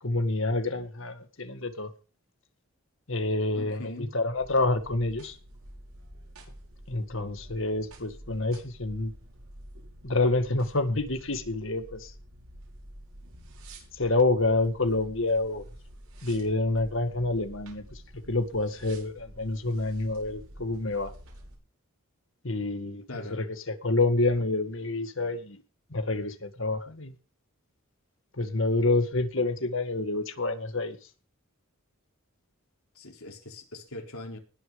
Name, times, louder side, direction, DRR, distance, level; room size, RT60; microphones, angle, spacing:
voice 1, 0.0-1.9 3.1-5.4 6.9-9.1 10.0-12.1 13.9-15.6 16.2-18.0 18.3-21.1 22.4-25.6 25.9-27.1 28.4-31.0, left 2 dB, 60° left, 1.9 m, -28 dB
voice 2, 3.5-4.1 23.1-23.4 32.9-34.4, left 2 dB, 85° left, 4.2 m, -41 dB
sound 1, 4.3-21.6, right 1 dB, 85° right, 5.8 m, -49 dB
19.5 x 6.7 x 5.2 m
head